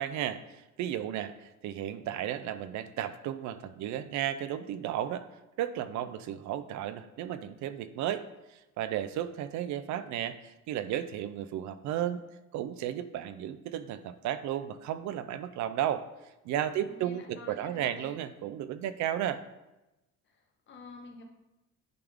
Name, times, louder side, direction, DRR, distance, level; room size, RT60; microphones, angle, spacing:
voice 1, 0.0-5.3 5.6-12.2 12.5-16.0 16.4-19.4, right 11 dB, 70° right, 12 dB, 0.5 m, -34 dB
voice 2, 16.7-18.2 20.2-21.2, left 3 dB, 40° left, 2 dB, 1.0 m, -48 dB
10.5 x 3.6 x 3.5 m, 1.0 s
cardioid pair, 155°, 30 cm